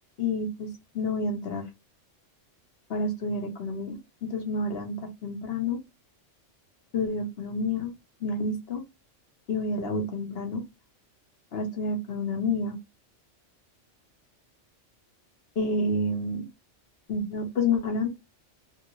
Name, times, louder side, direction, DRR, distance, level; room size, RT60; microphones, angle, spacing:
voice 1, 0.2-1.6 2.9-5.8 6.9-7.9 8.2-8.8 9.5-10.6 11.5-12.8 15.6-16.5 17.1-18.1, left 2 dB, 55° left, 3 dB, 1.0 m, -29 dB
3.2 x 2.5 x 3.0 m, 0.23 s
omnidirectional pair, 1.3 m